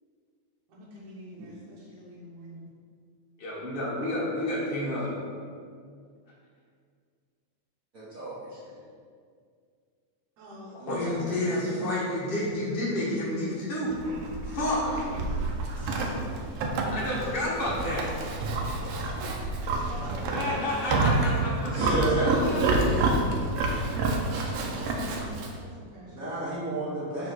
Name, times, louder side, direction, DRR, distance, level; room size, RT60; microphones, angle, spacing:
voice 1, 0.7-2.7 10.4-12.0 19.8-22.5 24.1-26.3, right 1 dB, 70° right, -6 dB, 2.2 m, -42 dB
voice 2, 3.4-5.1 10.7-14.0 14.4-15.0 15.8-16.1 16.9-18.1 20.3-22.6, left 1 dB, 30° left, -6 dB, 1.0 m, -30 dB
voice 3, 7.9-8.8 21.7-22.7 26.1-27.3, right 2 dB, 50° right, -10 dB, 1.0 m, -30 dB
Livestock farm animals working animals, 13.9-25.6, right 2 dB, 90° right, 1.3 m, -28 dB
5.2 x 4.4 x 6.1 m, 2.1 s
omnidirectional pair, 3.6 m